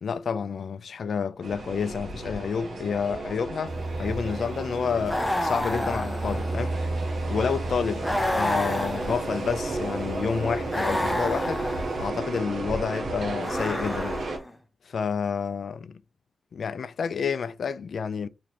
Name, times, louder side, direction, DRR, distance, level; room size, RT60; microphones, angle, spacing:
voice 1, 0.0-6.8 7.3-11.7 12.0-14.2 14.9-16.0 16.5-18.3, left 6 dB, 65° left, 0.3 m, -29 dB
sound 1, 1.4-14.4, right 2 dB, 65° right, 0.8 m, -33 dB
sound 2, 3.7-12.1, right 2 dB, 25° right, 1.0 m, -36 dB
sound 3, 5.1-6.8 8.0-9.6 10.7-12.0 13.4-14.5, left 1 dB, 10° left, 0.6 m, -30 dB
3.0 x 2.8 x 4.1 m
cardioid pair, 85°, 0 cm